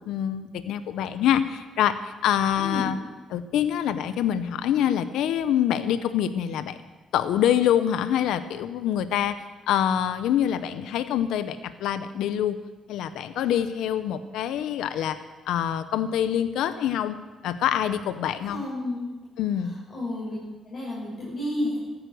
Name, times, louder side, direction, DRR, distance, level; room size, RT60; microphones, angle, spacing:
voice 1, 0.1-3.0 3.3-6.8 7.1-12.6 12.9-15.2 15.5-17.2 17.4-18.6 19.4-19.7, left 10 dB, 85° left, 12 dB, 0.7 m, -25 dB
voice 2, 2.5-2.9 18.4-19.1 19.6-20.4 20.6-21.8, left 1 dB, 50° left, -7 dB, 6.4 m, -31 dB
14.0 x 9.8 x 7.7 m, 1.2 s
cardioid pair, 90°, 0 cm